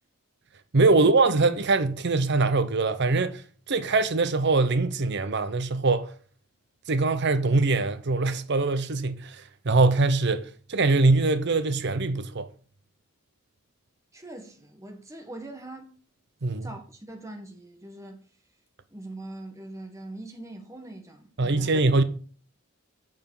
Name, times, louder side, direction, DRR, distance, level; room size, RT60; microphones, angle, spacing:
voice 1, 0.7-3.4 3.7-6.1 6.9-12.5 16.4-16.7 21.4-22.0, right 3 dB, 55° right, 0.7 m, -23 dB
voice 2, 14.1-16.0 16.6-18.2 18.9-21.7, right 1 dB, 15° right, 1.6 m, -42 dB
6.9 x 6.0 x 7.2 m
head